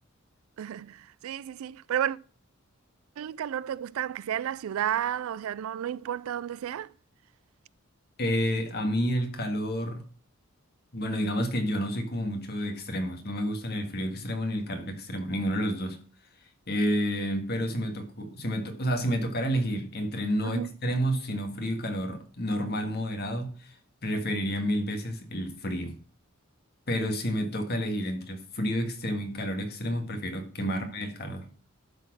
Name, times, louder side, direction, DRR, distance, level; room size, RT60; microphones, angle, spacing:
voice 1, 0.6-2.2 3.2-6.9 20.4-20.7 30.7-30.9, right 10 dB, 70° right, 0.3 m, -32 dB
voice 2, 8.2-10.0 10.9-16.0 16.7-26.0 26.9-31.5, equal, 50° left, 1.7 m, -30 dB
12.0 x 4.3 x 6.1 m
head